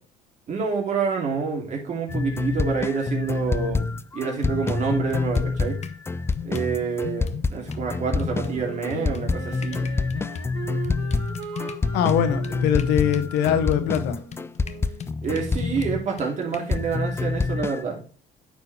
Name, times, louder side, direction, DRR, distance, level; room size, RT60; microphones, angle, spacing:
voice 1, 0.5-5.8 6.4-9.9 15.2-18.0, right 5 dB, 45° right, 2.6 m, -27 dB
sound 1, 2.1-16.3 16.7-17.8, left 4 dB, 15° left, 0.3 m, -27 dB
sound 2, 4.4-6.0 6.3-7.8 8.2-16.6, left 7 dB, 40° left, 0.8 m, -36 dB
Wind instrument woodwind instrument, 8.4-15.1, right 6 dB, 80° right, 1.6 m, -40 dB
voice 2, 11.9-14.2, left 9 dB, 90° left, 1.1 m, -22 dB
9.3 x 4.7 x 3.3 m
cardioid pair, 110°, 17 cm